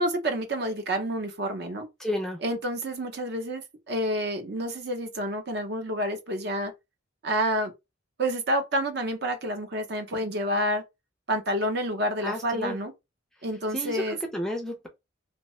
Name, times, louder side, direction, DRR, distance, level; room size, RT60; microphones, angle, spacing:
voice 1, 0.0-1.9 2.4-3.6 3.9-6.7 7.2-7.7 8.2-10.8 11.3-12.9 13.4-14.2, equal, 55° right, 0.6 m, -28 dB
voice 2, 2.0-2.4 12.2-12.8 13.7-14.9, left 1 dB, 5° left, 0.4 m, -31 dB
2.7 x 2.1 x 3.0 m
head